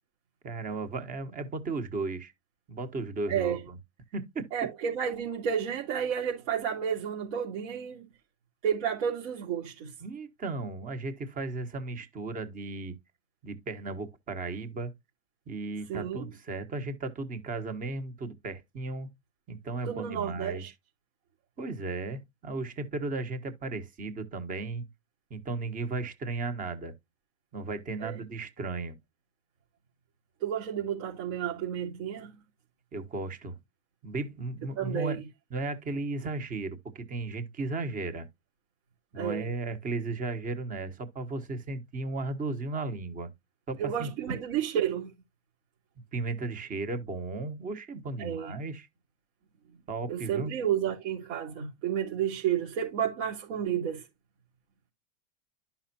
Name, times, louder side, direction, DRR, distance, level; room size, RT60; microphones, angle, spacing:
voice 1, 0.4-2.3 2.7-3.8 4.1-4.4 10.0-13.0 13.4-14.9 15.5-19.1 19.5-20.6 21.6-24.9 25.3-26.9 27.5-29.0 32.9-33.6 34.0-35.2 35.5-38.3 39.1-43.3 43.7-44.1 46.1-48.9 49.9-50.5, right 3 dB, 20° right, 1.3 m, -35 dB
voice 2, 3.3-3.6 4.5-8.1 8.6-9.9 15.9-16.3 19.9-20.7 28.0-28.2 30.4-32.3 34.8-35.2 39.1-39.4 43.8-45.1 48.2-48.5 50.1-54.0, right 9 dB, 65° right, 3.6 m, -31 dB
11.0 x 5.7 x 2.8 m
supercardioid pair, 160°, 40 cm